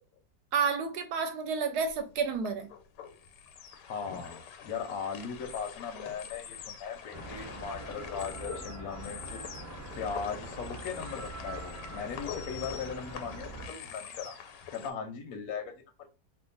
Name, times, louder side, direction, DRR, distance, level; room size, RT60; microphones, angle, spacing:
voice 1, 0.5-2.7, right 5 dB, 70° right, 1.1 m, -30 dB
sound 1, 1.8-14.9, left 8 dB, 90° left, 1.2 m, -45 dB
voice 2, 3.9-9.4 10.0-14.4 14.7-15.7 16.0-16.1, left 6 dB, 70° left, 0.9 m, -38 dB
sound 2, 7.1-13.7, right 2 dB, 15° right, 0.5 m, -43 dB
2.7 x 2.4 x 3.8 m
omnidirectional pair, 1.8 m